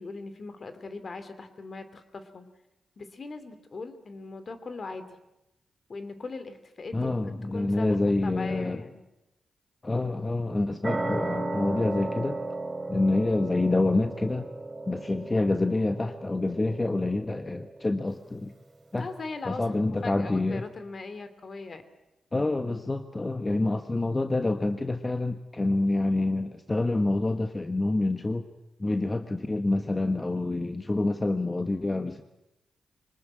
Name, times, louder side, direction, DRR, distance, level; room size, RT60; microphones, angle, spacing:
voice 1, 0.0-2.5 3.0-5.0 5.9-7.2 7.5-8.0 8.2-9.0 19.0-21.8, left 3 dB, 50° left, 10 dB, 2.7 m, -39 dB
voice 2, 6.9-8.8 9.8-12.4 12.9-14.5 14.9-18.5 18.9-19.1 19.4-20.6 22.3-28.5 28.8-32.2, left 2 dB, 30° left, 8 dB, 1.4 m, -27 dB
sound 1, 10.8-18.0, right 2 dB, 40° right, 4.7 m, -35 dB
24.0 x 19.5 x 8.9 m, 0.93 s
supercardioid pair, 45°, 0 cm